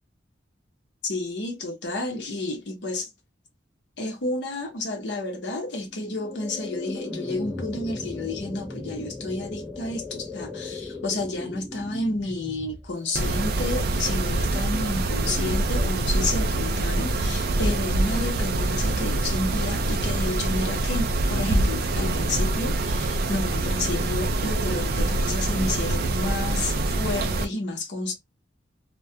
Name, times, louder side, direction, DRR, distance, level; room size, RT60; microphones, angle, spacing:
voice 1, 1.0-3.1 4.0-28.1, left 2 dB, 65° left, 0.8 m, -31 dB
sound 1, 5.8-16.9, left 3 dB, ahead, 0.6 m, -38 dB
Mechanisms, 13.1-27.4, right 2 dB, 55° right, 0.4 m, -25 dB
2.2 x 2.2 x 2.7 m
head